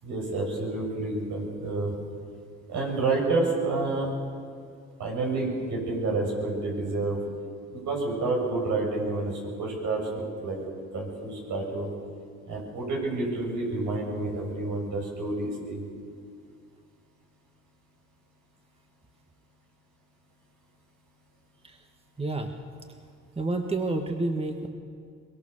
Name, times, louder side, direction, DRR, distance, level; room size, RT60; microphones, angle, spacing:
voice 1, 0.0-1.9 2.7-4.1 5.0-7.2 7.7-10.7 10.9-11.9 12.5-15.8, right 3 dB, 75° right, 0 dB, 7.2 m, -29 dB
voice 2, 22.2-22.5 23.4-24.7, right 2 dB, 20° right, 4 dB, 1.9 m, -29 dB
24.0 x 21.5 x 6.8 m, 2.3 s
cardioid pair, 90°, 30 cm